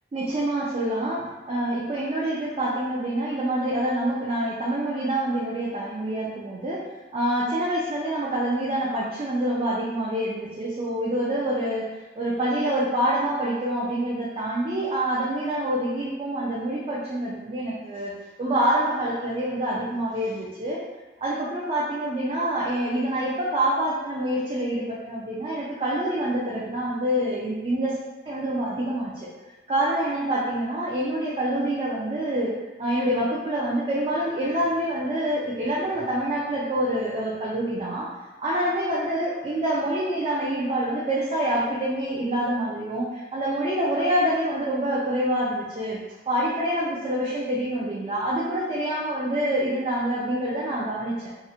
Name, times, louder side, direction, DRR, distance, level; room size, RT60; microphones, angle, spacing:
voice 1, 0.1-6.8 7.1-11.9 12.2-18.1 18.4-20.8 21.2-28.0 28.3-29.3 29.7-32.5 32.8-38.1 38.4-46.0 46.3-51.3, right 1 dB, 30° right, -7 dB, 0.3 m, -26 dB
2.4 x 2.0 x 2.8 m, 1.2 s
head